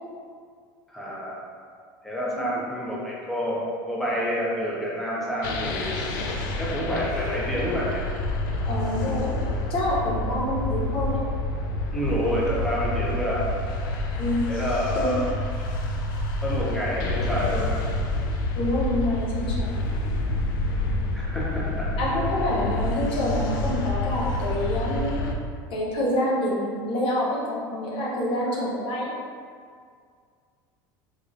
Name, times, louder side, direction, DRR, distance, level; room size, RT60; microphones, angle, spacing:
voice 1, 0.9-1.4 2.0-6.1 6.6-8.0 11.9-13.5 14.5-15.2 15.6-15.7 16.4-17.8 21.1-22.1, equal, ahead, -6 dB, 0.9 m, -28 dB
sound 1, 5.4-25.3, left 2 dB, 80° left, 0.4 m, -28 dB
voice 2, 8.6-9.3 9.7-11.2 14.2-14.5 14.9-15.2 18.6-19.7 22.0-25.3 25.7-29.1, left 1 dB, 55° left, -4 dB, 0.8 m, -27 dB
3.8 x 2.9 x 2.6 m, 2.1 s
hypercardioid pair, 85°, 11 cm